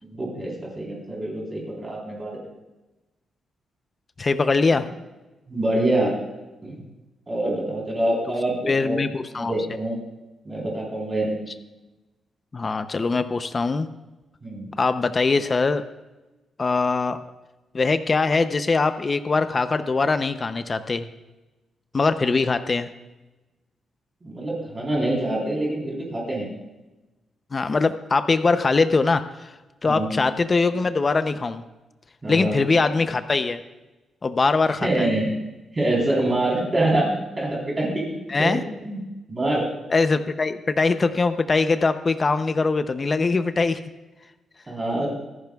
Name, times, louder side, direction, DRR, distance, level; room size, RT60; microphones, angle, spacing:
voice 1, 0.0-2.5 5.5-6.1 6.6-6.8 7.3-9.0 9.3-10.1 10.5-11.4 14.4-14.7 24.2-26.5 29.8-30.1 32.2-32.6 34.8-35.3 35.7-38.5 38.8-39.0 39.3-39.7 44.7-45.1, right 1 dB, 25° right, -3 dB, 3.9 m, -25 dB
voice 2, 4.2-4.9 8.7-9.5 12.5-13.9 14.8-15.8 16.6-17.2 17.7-21.1 21.9-22.9 27.5-29.5 29.8-31.6 32.3-33.6 34.2-35.1 38.3-38.6 39.9-43.8, left 4 dB, 30° left, 10 dB, 0.6 m, -22 dB
24.5 x 11.0 x 2.3 m, 1.1 s
cardioid pair, 135°, 0 cm